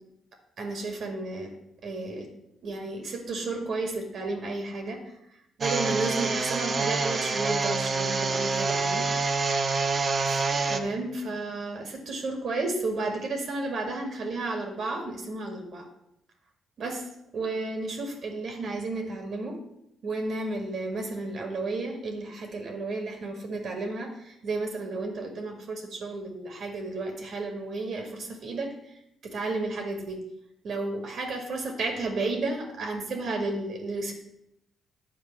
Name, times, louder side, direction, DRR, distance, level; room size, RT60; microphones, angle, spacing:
voice 1, 0.6-1.5 1.8-2.3 2.6-5.0 5.6-9.0 10.3-10.4 10.7-15.9 16.8-17.0 17.3-19.6 20.0-28.7 29.2-30.2 30.6-34.1, right 2 dB, 60° right, 3 dB, 2.0 m, -32 dB
sound 1, 5.6-10.8, right 4 dB, 40° right, 1.0 m, -27 dB
9.2 x 4.5 x 7.2 m, 0.79 s
cardioid pair, 90°, 0 cm